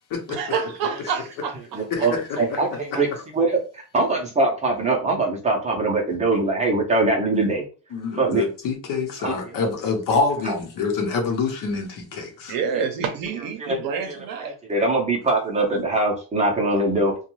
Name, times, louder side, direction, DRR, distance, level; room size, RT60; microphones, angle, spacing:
voice 1, 0.3-2.1 12.5-14.6, right 6 dB, 55° right, 0.7 m, -28 dB
voice 2, 1.7-3.1 3.3-7.6 8.1-8.5 9.2-9.5 10.4-10.6 13.6-13.8 14.1-17.2, right 2 dB, 15° right, 0.6 m, -23 dB
voice 3, 7.9-12.5, left 4 dB, 55° left, 0.9 m, -26 dB
2.5 x 2.3 x 3.0 m
cardioid pair, 135°, 40 cm